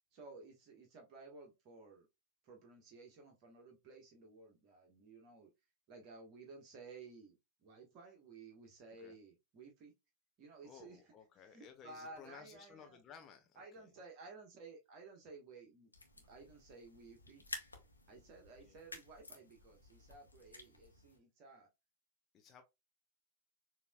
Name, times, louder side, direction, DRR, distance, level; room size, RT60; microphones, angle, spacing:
voice 1, 0.1-2.1 2.4-5.5 5.9-9.9 10.4-13.0 13.5-17.4 18.1-21.7, right 3 dB, 40° right, 1.4 m, -56 dB
voice 2, 10.6-13.9 18.6-18.7 22.3-22.6, left 7 dB, 30° left, 0.7 m, -57 dB
sound 1, 15.9-21.2, left 2 dB, 85° left, 1.2 m, -53 dB
6.8 x 2.9 x 2.4 m
figure-of-eight pair, 90°, 0 cm